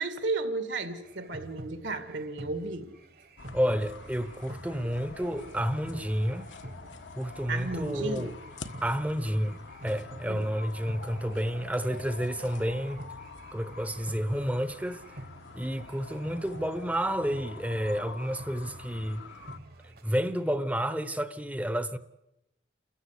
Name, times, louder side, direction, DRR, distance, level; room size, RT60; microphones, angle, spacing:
voice 1, 0.0-2.9 7.5-8.4 10.3-10.4, right 3 dB, 75° right, 2.3 m, -33 dB
sound 1, 1.0-20.6, right 1 dB, 55° right, 1.6 m, -48 dB
sound 2, 3.4-19.6, left 4 dB, 80° left, 1.4 m, -47 dB
voice 2, 3.5-6.5 7.2-8.3 8.8-13.0 13.5-15.0 15.5-19.2 20.0-22.0, equal, 10° right, 0.8 m, -30 dB
29.5 x 14.5 x 8.3 m
head